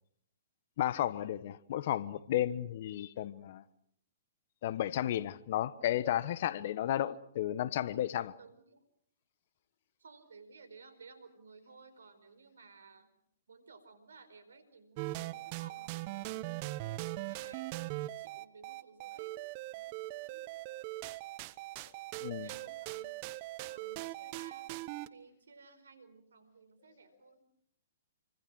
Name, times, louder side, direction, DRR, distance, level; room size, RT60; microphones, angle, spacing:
voice 1, 0.8-3.6 4.6-8.3 22.2-22.5, left 12 dB, 50° left, 1.2 m, -33 dB
voice 2, 8.4-8.8 10.0-13.1 13.5-16.5 16.8-17.7 18.0-19.4 19.8-20.5 22.4-23.1 23.7-27.4, right 4 dB, 75° right, 4.6 m, -57 dB
sound 1, 15.0-25.1, right 18 dB, 40° right, 1.1 m, -40 dB
28.0 x 25.0 x 6.3 m
hypercardioid pair, 125°, 0 cm